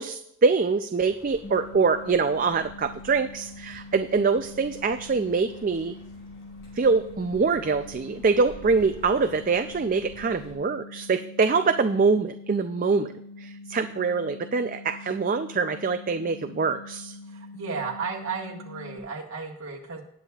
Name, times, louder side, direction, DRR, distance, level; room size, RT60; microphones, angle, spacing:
voice 1, 0.0-5.9 6.8-13.1 13.4-17.2, right 4 dB, 35° right, 8 dB, 0.3 m, -24 dB
sound 1, 1.0-10.5, left 1 dB, 60° left, 4.7 m, -51 dB
sound 2, 1.4-19.0, left 3 dB, 85° left, 1.3 m, -44 dB
voice 2, 17.3-20.0, right 5 dB, 65° right, -2 dB, 1.7 m, -34 dB
18.5 x 8.2 x 2.4 m, 0.80 s
head